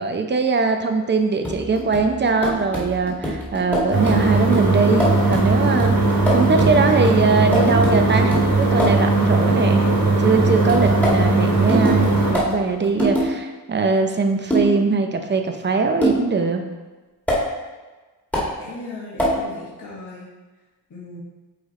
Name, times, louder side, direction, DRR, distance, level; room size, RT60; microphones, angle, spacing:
voice 1, 0.0-5.9 6.3-9.9 10.2-16.6, right 4 dB, 30° right, 5 dB, 0.7 m, -21 dB
sound 1, 1.4-9.1 10.7-13.3 14.5-14.8 16.0-16.3 17.3-17.4 18.3-18.5 19.2-19.4, equal, 5° left, 1.9 m, -25 dB
sound 2, 3.9-12.3, right 3 dB, 45° right, 2.0 m, -18 dB
voice 2, 18.6-20.3 20.9-21.2, left 2 dB, 50° left, -7 dB, 1.7 m, -37 dB
8.7 x 3.3 x 4.2 m, 1.3 s
cardioid pair, 115°, 38 cm